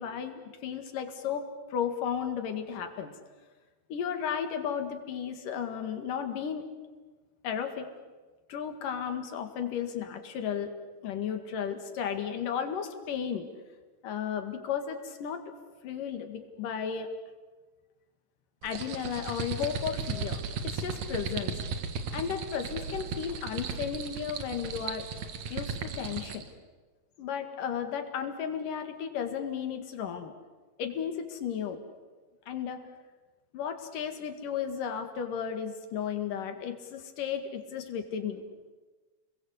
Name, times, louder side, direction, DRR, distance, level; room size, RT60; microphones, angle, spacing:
voice 1, 0.0-3.2 3.9-6.7 7.4-7.9 8.5-10.7 11.0-13.5 14.0-15.5 15.8-17.1 18.6-21.6 22.1-25.1 25.5-26.5 27.2-30.3 30.8-31.8 32.5-32.8 33.5-38.4, left 8 dB, 90° left, 7 dB, 3.6 m, -34 dB
sound 1, 18.6-26.5, right 5 dB, 60° right, 2.7 m, -36 dB
30.0 x 22.0 x 8.2 m, 1.3 s
omnidirectional pair, 3.7 m